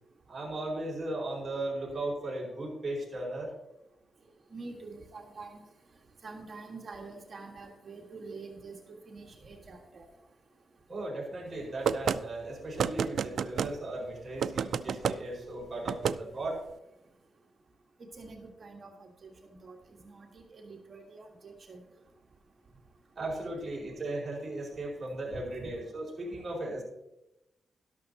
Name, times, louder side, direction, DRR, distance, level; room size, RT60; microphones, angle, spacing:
voice 1, 0.3-3.5 10.9-16.6 23.2-26.8, right 2 dB, 30° right, -3 dB, 4.8 m, -36 dB
voice 2, 4.5-5.6 6.2-10.1 18.0-21.8 25.6-25.7, right 3 dB, 45° right, 2 dB, 1.5 m, -46 dB
sound 1, 11.8-12.2 12.8-13.7 14.4-15.2 15.9-16.2, right 7 dB, 75° right, 0.3 m, -29 dB
12.0 x 12.0 x 2.8 m, 0.90 s
cardioid pair, 105°, 0 cm